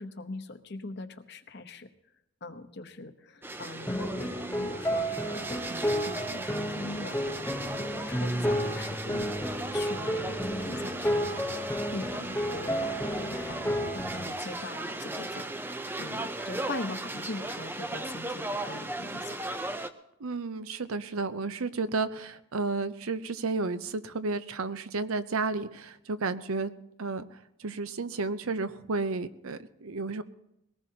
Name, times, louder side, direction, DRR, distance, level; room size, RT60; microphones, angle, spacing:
voice 1, 0.0-1.9 2.4-4.3 4.6-11.4 11.9-19.6, left 2 dB, 50° left, 8 dB, 0.9 m, -42 dB
sound 1, 3.4-19.9, right 2 dB, 10° right, 0.4 m, -37 dB
sound 2, 3.9-14.3, equal, 10° left, 0.8 m, -32 dB
voice 2, 20.2-26.7 27.0-30.2, right 3 dB, 90° right, 12 dB, 0.7 m, -32 dB
21.5 x 18.0 x 2.8 m, 0.85 s
head